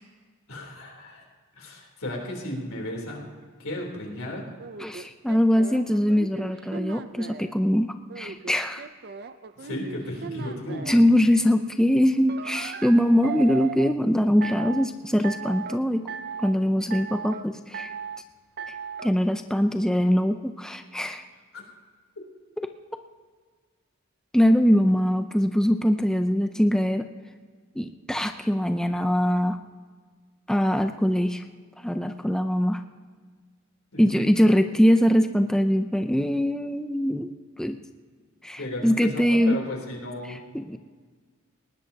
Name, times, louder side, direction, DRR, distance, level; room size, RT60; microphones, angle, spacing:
voice 1, 0.5-1.2 1.6-3.2 3.6-4.5 9.6-11.0 21.5-21.6 33.9-34.1 38.6-40.4, left 1 dB, 85° left, 0 dB, 3.4 m, -34 dB
sound 1, 4.6-7.5 8.1-11.0 12.3-13.9 14.4-14.9 15.2-15.8 16.1-16.5 16.9-17.4 17.7-18.2 18.6-19.1, right 6 dB, 50° right, 0.5 m, -37 dB
voice 2, 4.8-8.9 10.9-16.1 16.4-17.9 19.0-21.2 22.6-22.7 24.3-27.1 27.8-29.6 30.5-31.4 31.8-32.8 34.0-37.3 37.6-37.8 38.4-39.6 40.2-40.8, equal, 5° left, 7 dB, 0.5 m, -22 dB
19.5 x 19.0 x 2.9 m, 1.5 s
head